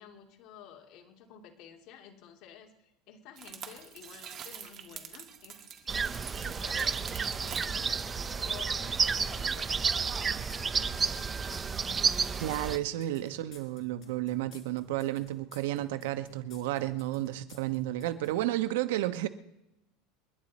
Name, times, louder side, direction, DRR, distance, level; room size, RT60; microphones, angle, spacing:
voice 1, 0.0-11.7, left 9 dB, 50° left, 2.6 m, -52 dB
sound 1, 3.3-8.2, right 8 dB, 35° right, 1.8 m, -45 dB
sound 2, 5.9-12.8, right 5 dB, 20° right, 0.5 m, -31 dB
sound 3, 10.5-18.4, left 7 dB, 35° left, 4.3 m, -54 dB
voice 2, 12.4-19.3, right 14 dB, 80° right, 1.0 m, -32 dB
28.5 x 11.0 x 4.2 m
supercardioid pair, 150°, 0 cm